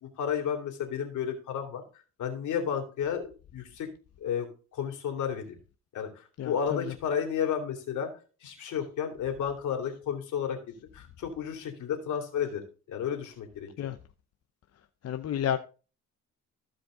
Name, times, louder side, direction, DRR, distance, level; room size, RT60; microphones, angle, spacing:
voice 1, 0.0-1.8 2.2-3.9 4.2-4.5 4.7-5.6 5.9-8.1 8.4-12.6 12.9-13.7, left 8 dB, 75° left, 2.8 m, -32 dB
voice 2, 6.4-6.9 13.8-14.0 15.0-15.6, left 10 dB, 55° left, 0.7 m, -31 dB
14.5 x 5.1 x 3.8 m
cardioid pair, 90°, 30 cm